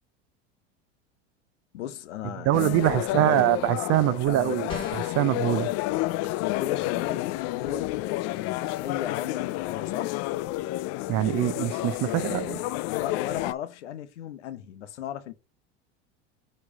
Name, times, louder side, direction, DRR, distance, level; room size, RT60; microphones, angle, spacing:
voice 1, 1.7-3.5 4.1-4.6 6.4-10.2 12.0-15.3, left 10 dB, 90° left, 1.0 m, -36 dB
sound 1, 2.5-13.5, left 17 dB, 50° left, 0.4 m, -30 dB
voice 2, 2.5-5.7 11.1-12.6, right 16 dB, 45° right, 0.6 m, -24 dB
sound 2, 4.7-5.2, left 2 dB, 15° left, 2.9 m, -36 dB
7.1 x 3.2 x 5.3 m
hypercardioid pair, 100°, 34 cm